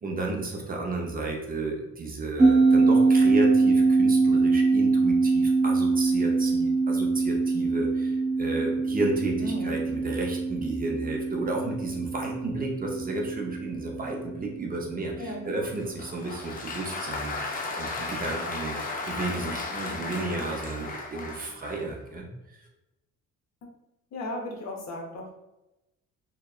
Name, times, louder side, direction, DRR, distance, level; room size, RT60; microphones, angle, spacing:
voice 1, 0.0-18.8 19.0-22.3, right 2 dB, 30° right, 0 dB, 0.5 m, -33 dB
sound 1, 2.4-15.2, right 3 dB, 45° right, 0.9 m, -24 dB
voice 2, 9.4-9.8 15.2-15.7 24.1-25.4, left 1 dB, 65° left, 0 dB, 0.7 m, -36 dB
Applause, 15.8-21.9, left 3 dB, 30° left, 0.5 m, -35 dB
2.8 x 2.1 x 2.3 m, 0.94 s
cardioid pair, 90°, 30 cm